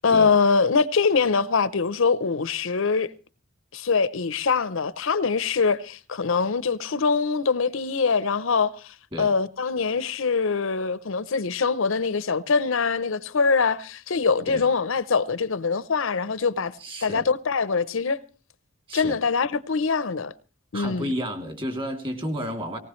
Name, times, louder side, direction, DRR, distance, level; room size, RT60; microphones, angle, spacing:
voice 1, 0.0-3.1 3.7-16.7 17.0-18.2 18.9-20.3 20.7-21.1, left 5 dB, 70° left, 0.7 m, -23 dB
voice 2, 16.8-17.3 18.9-19.2 20.7-22.8, equal, 25° right, 2.8 m, -31 dB
19.0 x 18.5 x 3.2 m
head